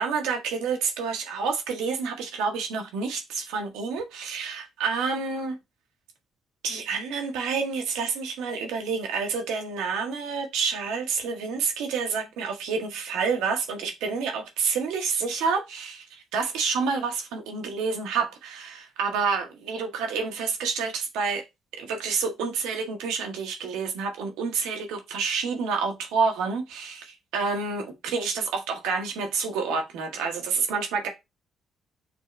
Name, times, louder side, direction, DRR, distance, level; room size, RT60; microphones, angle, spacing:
voice 1, 0.0-5.6 6.6-21.4 21.8-27.0 27.3-31.1, right 5 dB, 85° right, 1.1 m, -28 dB
6.2 x 2.1 x 3.1 m
supercardioid pair, 65°, 0 cm